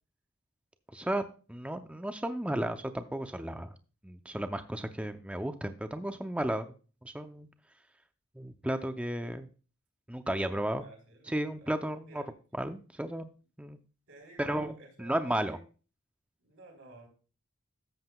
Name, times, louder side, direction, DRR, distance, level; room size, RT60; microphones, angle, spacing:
voice 1, 0.9-3.7 4.0-6.7 7.0-7.5 8.4-9.5 10.1-10.8 11.3-12.2 12.6-13.3 13.6-13.8 14.4-14.7 15.0-15.6, right 1 dB, 5° right, 8 dB, 0.5 m, -33 dB
voice 2, 10.2-11.7 12.1-12.3 14.1-15.6 16.4-17.1, right 2 dB, 65° right, 1 dB, 3.9 m, -53 dB
13.0 x 7.8 x 2.3 m, 0.36 s
head